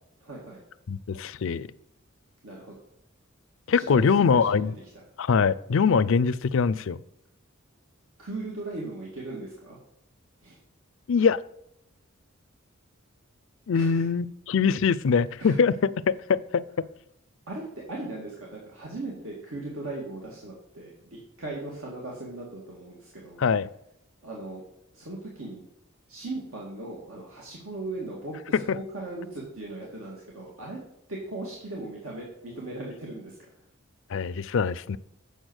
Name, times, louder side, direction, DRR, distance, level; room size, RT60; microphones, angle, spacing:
voice 1, 0.2-0.6 2.4-2.7 3.8-4.6 8.2-9.8 10.4-10.6 13.7-14.1 15.4-15.6 17.5-23.4 24.2-24.6 24.9-25.6 26.1-30.8 31.1-33.4, right 2 dB, 80° right, 2.1 m, -38 dB
voice 2, 0.9-1.7 3.7-4.7 5.2-7.0 11.1-11.4 13.7-16.6 23.4-23.7 28.7-28.8 34.1-35.0, left 5 dB, 65° left, 0.4 m, -23 dB
8.0 x 6.9 x 6.3 m
head